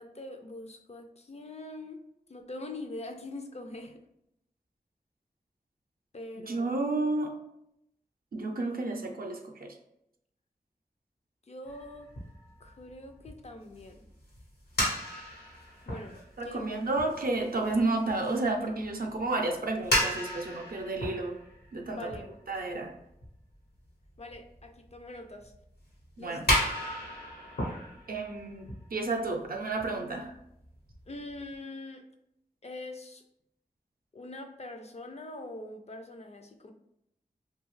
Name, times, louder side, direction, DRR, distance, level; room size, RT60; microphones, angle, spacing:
voice 1, 0.0-2.0 2.3-4.1 6.1-6.8 11.5-12.1 12.6-14.0 15.9-16.8 21.9-22.3 24.2-25.5 26.2-26.6 31.1-32.0 32.6-33.2 34.1-36.7, left 2 dB, 45° left, 5 dB, 0.4 m, -43 dB
voice 2, 6.4-7.3 8.3-9.7 16.4-21.3 21.7-22.0 22.5-22.9 26.2-26.4 28.1-28.7 28.9-30.3, right 2 dB, 65° right, 3 dB, 0.5 m, -31 dB
sound 1, 11.6-19.3 19.5-22.7 23.2-23.3 24.2-24.6 24.9-25.0 25.4-25.5 26.0-26.1 26.4-29.5 29.8-29.9 30.3-30.4 30.6-31.5, left 1 dB, 80° left, 1.0 m, -34 dB
2.7 x 2.2 x 3.0 m, 0.80 s
wide cardioid pair, 45°, 16 cm